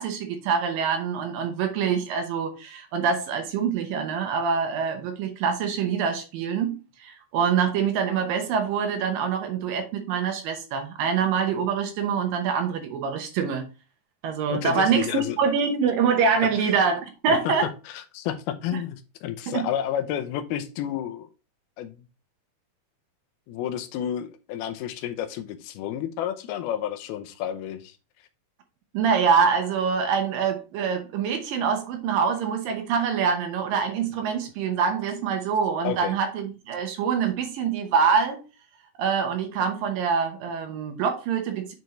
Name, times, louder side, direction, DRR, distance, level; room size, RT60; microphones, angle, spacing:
voice 1, 0.0-13.7 14.2-17.7 19.5-19.7 28.9-38.4 39.0-41.7, right 6 dB, 70° right, 2.5 m, -25 dB
voice 2, 14.5-15.4 16.6-16.7 17.3-17.5 17.9-21.3 21.8-22.0 23.5-28.0 35.8-36.1, left 10 dB, 80° left, 2.6 m, -31 dB
7.9 x 4.5 x 3.1 m
omnidirectional pair, 4.4 m